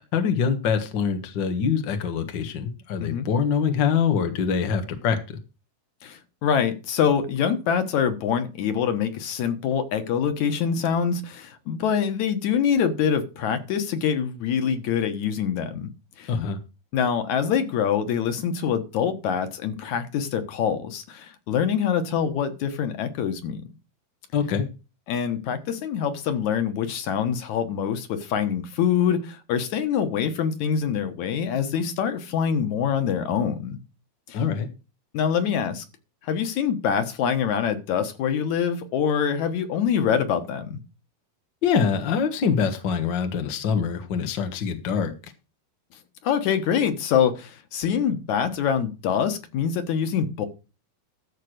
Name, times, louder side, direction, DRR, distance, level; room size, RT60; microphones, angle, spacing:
voice 1, 0.1-5.2 16.3-16.6 24.3-24.6 34.3-34.7 41.6-45.1, left 6 dB, 85° left, 6 dB, 0.9 m, -24 dB
voice 2, 6.0-15.9 16.2-16.3 16.9-23.7 25.1-33.8 34.3-34.4 35.1-35.8 36.2-40.8 46.2-50.5, left 7 dB, 60° left, 9 dB, 2.2 m, -25 dB
14.0 x 4.7 x 6.5 m, 0.31 s
omnidirectional pair, 4.4 m